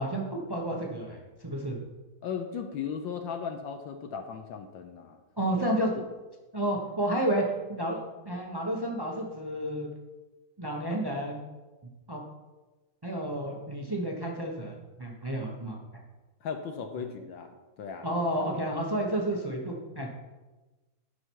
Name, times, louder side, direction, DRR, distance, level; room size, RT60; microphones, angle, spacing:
voice 1, 0.0-1.8 5.4-5.9 6.5-8.0 8.2-9.9 10.6-11.4 12.1-12.2 13.0-15.8 18.0-20.1, right 1 dB, 40° right, -1 dB, 0.3 m, -31 dB
voice 2, 2.2-5.2 16.4-18.1, left 7 dB, 70° left, 6 dB, 1.3 m, -37 dB
11.5 x 5.6 x 4.6 m, 1.2 s
omnidirectional pair, 2.4 m